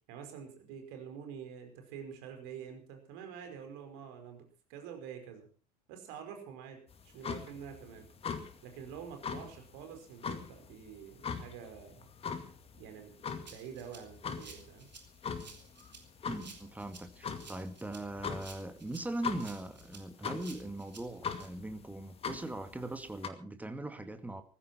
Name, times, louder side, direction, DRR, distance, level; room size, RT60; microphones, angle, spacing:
voice 1, 0.1-5.5 5.9-8.1 8.6-12.1 12.7-14.9, right 7 dB, 55° right, 5 dB, 5.0 m, -47 dB
sound 1, 6.9-23.3, left 6 dB, 25° left, 2.2 m, -42 dB
Rattle (instrument), 13.5-21.5, right 4 dB, 80° right, 3.0 m, -53 dB
voice 2, 16.3-24.4, right 1 dB, 5° right, 9 dB, 2.2 m, -40 dB
19.5 x 15.0 x 4.4 m, 0.37 s
figure-of-eight pair, 70°, 21 cm